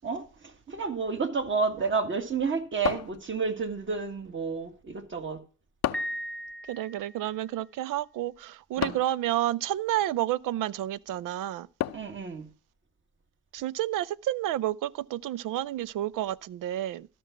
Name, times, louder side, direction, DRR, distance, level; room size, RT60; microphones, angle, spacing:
voice 1, 0.0-5.4 8.8-9.0 11.9-12.5, right 5 dB, 35° right, 1.9 m, -30 dB
sound 1, 2.9-3.7 5.8-6.3 8.8-9.2 11.8-12.2, left 12 dB, 55° left, 0.6 m, -32 dB
Piano, 5.9-7.4, equal, 5° left, 0.5 m, -37 dB
voice 2, 6.7-11.7 13.5-17.1, right 13 dB, 70° right, 0.5 m, -30 dB
13.0 x 6.1 x 5.8 m
cardioid pair, 95°, 33 cm